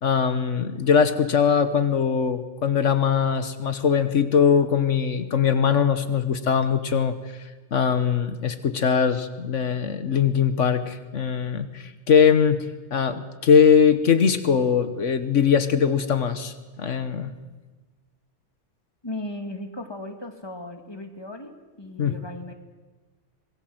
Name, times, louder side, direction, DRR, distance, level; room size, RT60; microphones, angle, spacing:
voice 1, 0.0-7.1 7.7-12.6 12.9-17.3 22.0-22.1, left 7 dB, 80° left, 10 dB, 1.6 m, -21 dB
voice 2, 19.0-22.5, left 1 dB, 20° left, 5 dB, 2.3 m, -36 dB
25.5 x 20.5 x 7.9 m, 1.3 s
omnidirectional pair, 1.2 m